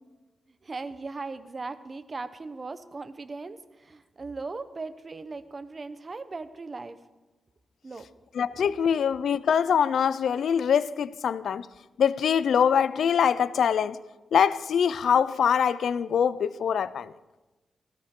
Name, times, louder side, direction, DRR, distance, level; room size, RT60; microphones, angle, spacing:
voice 1, 0.6-7.0 7.8-8.1 8.5-8.6, right 3 dB, 35° right, 0.8 m, -38 dB
voice 2, 8.3-11.7 12.0-14.0 14.3-17.1, left 7 dB, 85° left, 0.4 m, -24 dB
18.0 x 15.5 x 3.8 m
wide cardioid pair, 110°, 0 cm